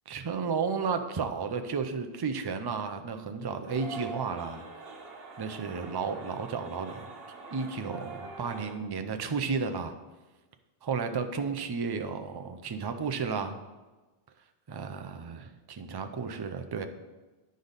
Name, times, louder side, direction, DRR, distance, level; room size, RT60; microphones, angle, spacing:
voice 1, 0.1-4.6 5.4-7.1 7.5-9.9 10.8-13.6 14.7-16.9, right 5 dB, 35° right, 7 dB, 0.4 m, -33 dB
sound 1, 3.6-8.7, right 3 dB, 65° right, 1.2 m, -44 dB
9.7 x 5.2 x 4.0 m, 1.2 s
omnidirectional pair, 1.1 m